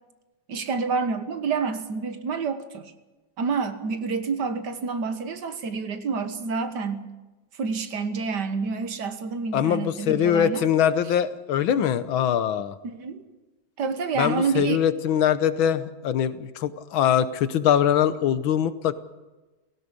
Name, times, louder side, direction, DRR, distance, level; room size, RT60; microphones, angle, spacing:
voice 1, 0.5-2.9 3.4-7.1 7.5-10.6 12.8-13.2 13.8-14.8, right 5 dB, 60° right, 10 dB, 1.9 m, -28 dB
voice 2, 9.5-12.8 14.2-18.9, left 9 dB, 90° left, 14 dB, 1.8 m, -22 dB
17.0 x 17.0 x 9.8 m, 1.1 s
omnidirectional pair, 2.1 m